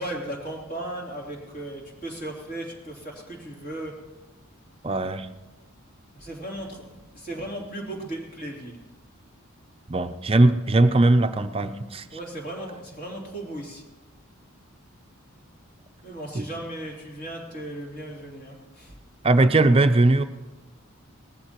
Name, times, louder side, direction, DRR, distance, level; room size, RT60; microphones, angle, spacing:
voice 1, 0.0-3.9 6.1-6.9 7.1-8.8 12.1-13.8 16.0-18.9, right 1 dB, 40° left, -2 dB, 3.4 m, -36 dB
voice 2, 4.8-5.3 9.9-12.1 16.3-16.4 19.2-20.2, right 2 dB, 25° right, 8 dB, 0.5 m, -19 dB
19.0 x 14.5 x 3.0 m, 1.1 s
head